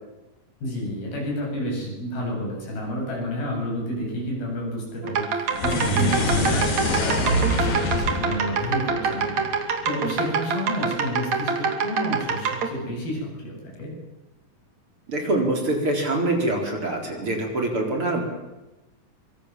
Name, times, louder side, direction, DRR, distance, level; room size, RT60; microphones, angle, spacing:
voice 1, 0.6-13.9, left 1 dB, 85° left, -1 dB, 9.8 m, -30 dB
sound 1, 5.0-12.7, right 5 dB, 55° right, 3.5 m, -26 dB
sound 2, 5.5-9.9, left 1 dB, 65° left, 5.0 m, -26 dB
voice 2, 15.1-18.2, right 2 dB, 35° right, 2 dB, 4.9 m, -24 dB
25.5 x 23.0 x 7.6 m, 1.0 s
omnidirectional pair, 4.2 m